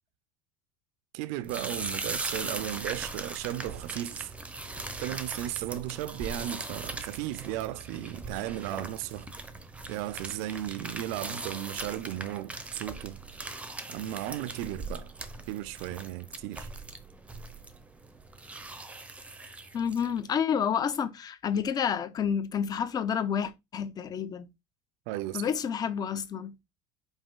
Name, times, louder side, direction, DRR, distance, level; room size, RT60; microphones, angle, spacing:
voice 1, 1.1-4.3 5.0-9.3 9.9-13.2 13.9-15.1 15.5-16.7 25.1-25.4, right 14 dB, 65° right, 0.6 m, -35 dB
sound 1, 1.4-20.2, right 3 dB, 10° right, 0.8 m, -40 dB
voice 2, 19.7-24.5 25.3-26.5, left 7 dB, 25° left, 0.8 m, -29 dB
5.4 x 4.9 x 3.8 m
cardioid pair, 150°, 15 cm